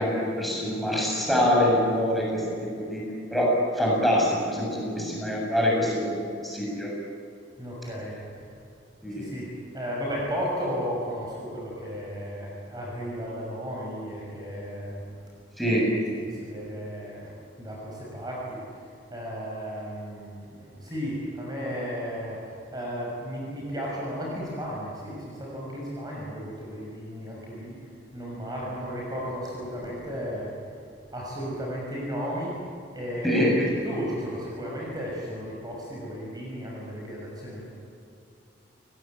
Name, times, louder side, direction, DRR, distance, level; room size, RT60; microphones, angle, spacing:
voice 1, 0.0-2.4 2.8-3.0 3.3-3.5 3.7-6.9 9.0-9.3 15.6-15.9 33.2-33.7, equal, ahead, -3 dB, 7.4 m, -24 dB
voice 2, 7.6-8.5 9.1-15.0 16.1-17.3 17.6-30.6 31.1-32.6 32.9-33.3 33.8-37.7, equal, 20° right, -3 dB, 5.9 m, -34 dB
29.5 x 19.0 x 9.2 m, 2.5 s
head